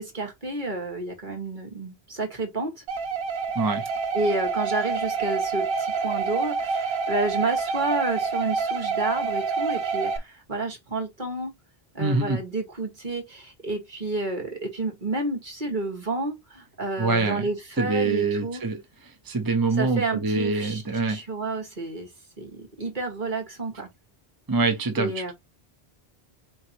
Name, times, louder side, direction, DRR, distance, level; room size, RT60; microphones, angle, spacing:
voice 1, 0.0-2.7 4.1-10.1 10.5-11.5 12.0-16.4 16.8-18.6 19.8-20.8 21.1-22.1 22.4-23.9 25.0-25.3, right 2 dB, 50° right, 1.8 m, -30 dB
sound 1, 2.9-10.2, right 5 dB, 75° right, 1.0 m, -27 dB
voice 2, 3.6-3.9 12.0-12.4 17.0-17.4 17.8-18.8 19.3-21.2 24.5-25.3, right 3 dB, 25° right, 0.7 m, -25 dB
4.7 x 3.7 x 2.9 m
omnidirectional pair, 1.1 m